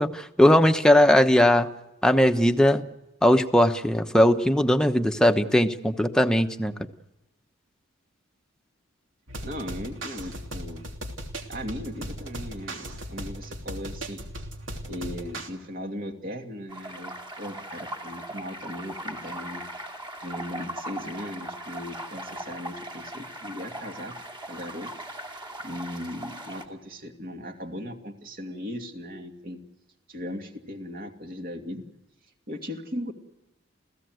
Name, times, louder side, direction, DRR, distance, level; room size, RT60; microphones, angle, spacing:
voice 1, 0.0-1.7 2.0-2.8 3.2-6.7, left 1 dB, 5° left, 6 dB, 1.0 m, -19 dB
sound 1, 9.3-15.5, right 1 dB, 75° right, 3.1 m, -37 dB
voice 2, 9.4-10.8 11.5-14.2 14.8-19.6 20.2-24.2 24.5-24.9 25.6-29.6 30.1-31.8 32.5-33.1, equal, 45° right, 4 dB, 2.6 m, -37 dB
sound 2, 16.7-26.7, right 1 dB, 25° right, 2.4 m, -39 dB
29.0 x 16.5 x 7.9 m, 1.0 s
head